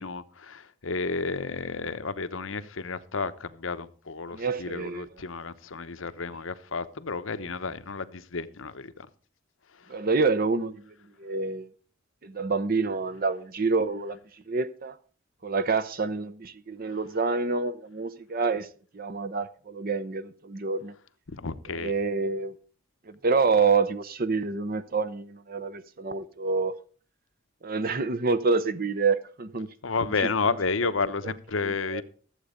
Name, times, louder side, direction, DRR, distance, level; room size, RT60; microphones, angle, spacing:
voice 1, 0.0-9.1 9.8-10.0 16.8-17.0 21.3-21.9 29.8-32.0, left 4 dB, 90° left, 0.9 m, -31 dB
voice 2, 4.3-5.0 9.9-11.7 12.2-15.0 15.4-18.7 18.9-20.9 21.8-22.5 23.1-26.7 27.6-29.7 30.2-30.3 31.2-31.3 31.6-32.0, right 4 dB, 50° right, 0.7 m, -27 dB
14.0 x 8.2 x 5.1 m
head